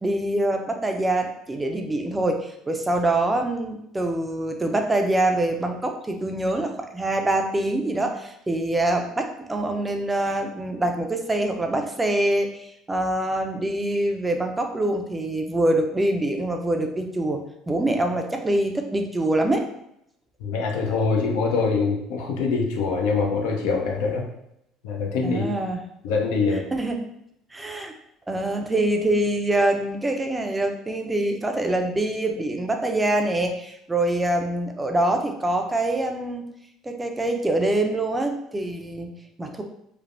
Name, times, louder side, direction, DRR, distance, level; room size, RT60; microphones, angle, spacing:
voice 1, 0.0-17.4 17.7-19.6 25.2-25.8 26.5-27.0 27.5-27.9 28.3-36.4 36.8-39.1 39.4-39.6, right 1 dB, 15° right, 4 dB, 0.5 m, -25 dB
voice 2, 20.4-24.3 24.8-25.4 26.0-26.7, left 4 dB, 80° left, 1 dB, 0.6 m, -24 dB
3.2 x 2.1 x 2.5 m, 0.78 s
supercardioid pair, 80°, 0 cm